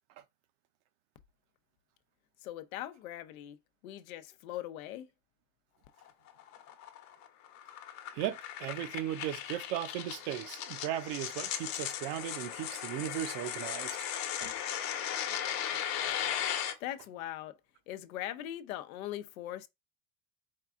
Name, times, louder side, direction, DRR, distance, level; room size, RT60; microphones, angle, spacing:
voice 1, 2.4-3.6 3.8-5.1 16.8-17.5 17.9-19.7, left 13 dB, 90° left, 0.7 m, -40 dB
sound 1, 6.0-16.7, left 10 dB, 60° left, 1.0 m, -37 dB
voice 2, 8.1-14.1 14.4-14.6, right 12 dB, 60° right, 0.7 m, -37 dB
4.6 x 2.4 x 3.6 m
supercardioid pair, 130°, 41 cm